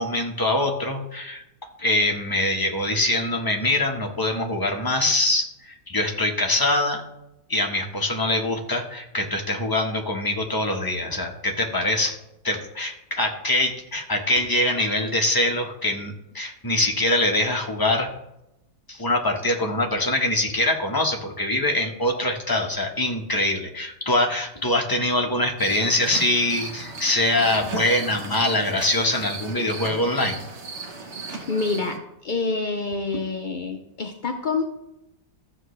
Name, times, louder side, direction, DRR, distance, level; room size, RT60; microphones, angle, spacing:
voice 1, 0.0-1.4 1.8-7.0 7.5-12.2 12.4-18.1 18.9-30.4, left 1 dB, 15° left, 1 dB, 1.0 m, -23 dB
sound 1, 25.6-32.0, right 4 dB, 45° right, 1.3 m, -36 dB
voice 2, 31.5-32.0 32.2-34.6, left 3 dB, 65° left, 4 dB, 0.4 m, -27 dB
14.0 x 7.5 x 3.3 m, 0.87 s
omnidirectional pair, 1.9 m